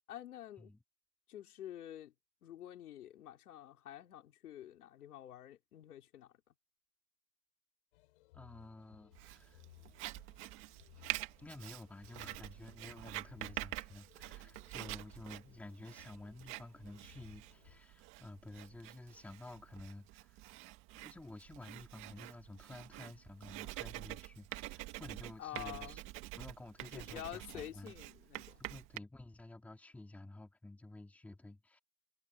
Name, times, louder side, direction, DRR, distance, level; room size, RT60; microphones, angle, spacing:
voice 1, 0.1-0.7 1.3-2.1 2.4-6.3 25.4-26.0 26.8-28.6, left 12 dB, 65° left, 4.6 m, -48 dB
sound 1, 7.9-17.8, left 19 dB, 45° left, 4.0 m, -63 dB
voice 2, 8.3-9.6 11.4-20.4 21.0-26.0 26.3-27.9 28.6-31.8, left 2 dB, 5° left, 2.9 m, -52 dB
Writing, 9.2-29.0, right 19 dB, 25° right, 1.9 m, -47 dB
hypercardioid pair, 155°, 48 cm